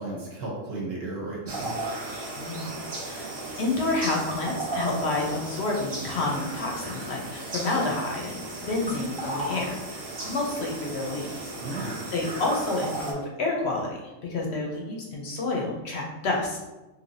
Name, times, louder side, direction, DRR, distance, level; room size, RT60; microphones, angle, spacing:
voice 1, 0.0-1.7 11.6-12.0, right 2 dB, 60° right, -4 dB, 1.0 m, -34 dB
sound 1, 1.5-13.1, right 2 dB, 35° right, 0.4 m, -35 dB
voice 2, 2.4-11.5 11.8-14.0 14.3-16.6, left 2 dB, 65° left, -2 dB, 0.8 m, -29 dB
3.1 x 2.7 x 2.6 m, 1.1 s
omnidirectional pair, 1.3 m